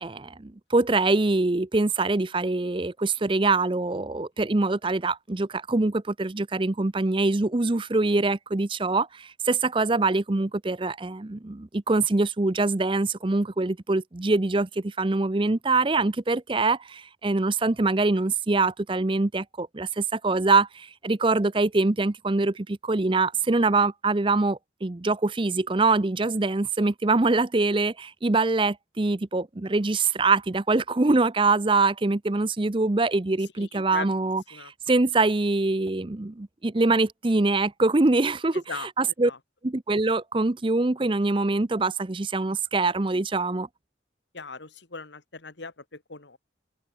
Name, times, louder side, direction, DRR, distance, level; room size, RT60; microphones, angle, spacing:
voice 1, 0.0-38.6 39.0-39.3 39.6-43.7, right 3 dB, 25° right, 0.6 m, -24 dB
voice 2, 33.4-34.7 38.5-38.9 39.2-39.4 44.3-46.4, left 4 dB, 70° left, 2.0 m, -39 dB
head